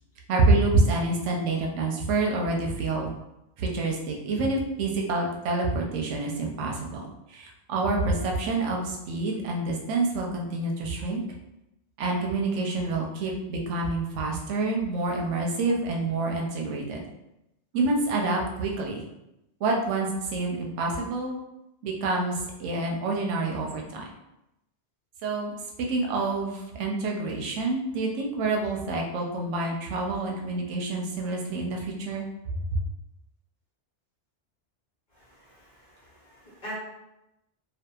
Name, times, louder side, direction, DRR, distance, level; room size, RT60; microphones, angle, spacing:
voice 1, 0.3-3.1 3.6-7.0 7.3-11.2 12.0-17.0 17.7-19.0 19.6-21.4 21.8-24.0 25.2-25.5 25.8-32.2 32.7-32.8, right 2 dB, 85° right, 0 dB, 0.9 m, -27 dB
voice 2, 35.1-36.7, equal, 45° left, -6 dB, 0.8 m, -44 dB
2.7 x 2.3 x 2.3 m, 0.89 s
omnidirectional pair, 1.2 m